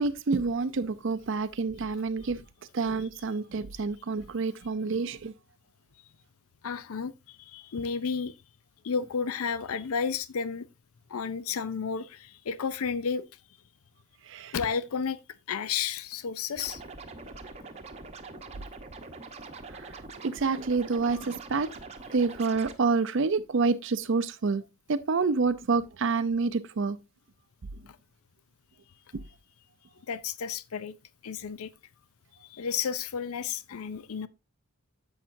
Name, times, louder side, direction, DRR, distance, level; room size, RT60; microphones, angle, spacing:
voice 1, 0.0-2.4 2.7-5.3 14.3-14.5 19.7-19.9 20.2-21.7 22.1-24.6 24.9-27.0 29.1-29.2, right 4 dB, 55° right, 0.5 m, -28 dB
voice 2, 6.6-8.3 8.8-10.7 11.1-13.3 14.5-15.2 15.5-16.8 27.9-28.0 30.1-31.0 31.2-31.7 32.4-34.3, left 6 dB, 75° left, 0.5 m, -32 dB
Scratching (performance technique), 16.6-22.7, right 3 dB, 30° right, 0.9 m, -44 dB
10.0 x 7.3 x 2.6 m
head